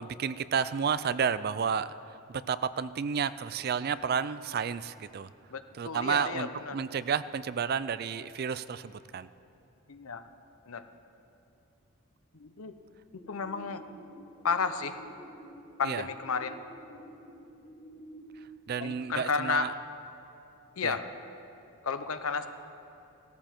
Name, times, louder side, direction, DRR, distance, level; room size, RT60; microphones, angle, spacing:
voice 1, 0.0-1.9 2.3-5.3 5.7-9.3 15.8-16.1 18.7-19.7 20.8-21.0, right 6 dB, 45° right, 15 dB, 0.3 m, -31 dB
voice 2, 5.5-6.8 9.9-10.2 10.7-10.9 12.3-12.7 13.1-13.8 14.4-15.0 15.8-16.6 18.8-19.7 20.8-21.1 21.8-22.5, left 5 dB, 75° left, 10 dB, 0.7 m, -32 dB
sound 1, 13.2-18.2, equal, 20° left, 3.3 m, -50 dB
17.0 x 14.0 x 4.5 m, 2.8 s
head